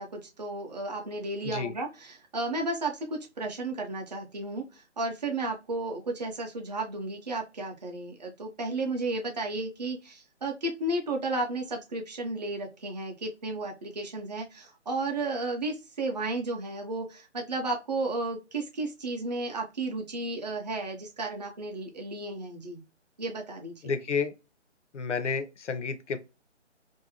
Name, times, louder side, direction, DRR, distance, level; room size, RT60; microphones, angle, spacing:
voice 1, 0.0-22.8 23.2-23.7, right 2 dB, 35° right, 0.6 m, -33 dB
voice 2, 23.8-24.3 24.9-26.2, left 5 dB, 70° left, 0.6 m, -30 dB
2.6 x 2.0 x 2.7 m
figure-of-eight pair, 150°, 36 cm